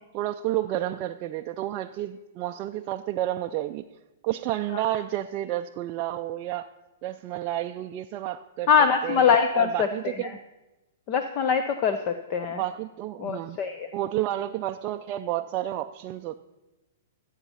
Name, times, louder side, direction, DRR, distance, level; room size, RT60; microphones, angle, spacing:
voice 1, 0.1-3.8 4.2-6.7 7.0-8.7 9.0-10.4 12.5-13.6 13.9-16.4, right 13 dB, 30° right, 4 dB, 0.4 m, -30 dB
voice 2, 8.7-9.9 11.1-12.6 13.2-13.9, left 7 dB, 30° left, 8 dB, 0.7 m, -23 dB
14.0 x 8.2 x 5.7 m, 1.0 s
hypercardioid pair, 155°, 0 cm